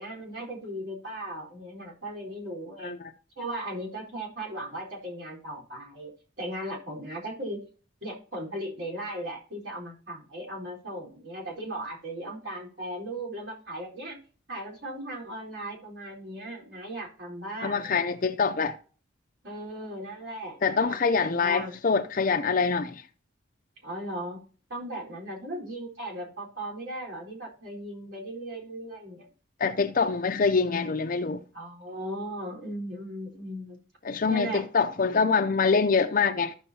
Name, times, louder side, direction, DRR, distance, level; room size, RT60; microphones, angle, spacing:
voice 1, 0.0-2.9 3.4-6.1 6.4-7.6 8.0-14.2 14.5-17.9 19.4-21.0 21.3-21.8 23.8-24.4 24.7-29.3 31.5-33.8 34.3-34.7, right 1 dB, 65° right, 4.2 m, -37 dB
voice 2, 2.8-3.1 17.6-18.7 20.6-23.0 29.6-31.4 34.0-36.5, left 5 dB, 45° left, 0.5 m, -25 dB
15.0 x 6.3 x 2.8 m
head